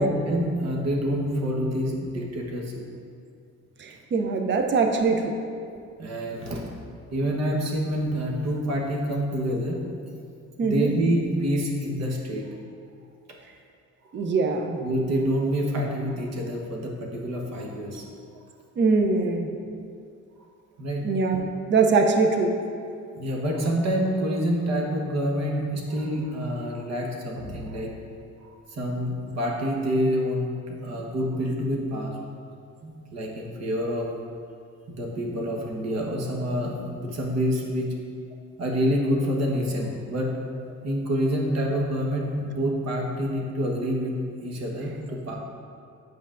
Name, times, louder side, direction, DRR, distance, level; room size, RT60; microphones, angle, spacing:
voice 1, 0.0-2.7 6.0-6.6 7.1-9.8 10.6-12.5 14.8-18.0 20.8-21.0 23.2-27.9 28.4-32.1 32.8-34.1 34.9-37.9 38.6-40.3 40.8-44.1 44.4-45.4, equal, 60° right, -1 dB, 1.2 m, -27 dB
voice 2, 3.8-5.3 10.6-10.9 14.1-14.8 18.8-19.8 21.0-22.6, right 4 dB, 40° right, 4 dB, 0.6 m, -23 dB
7.9 x 5.4 x 2.5 m, 2.4 s
cardioid pair, 90°, 30 cm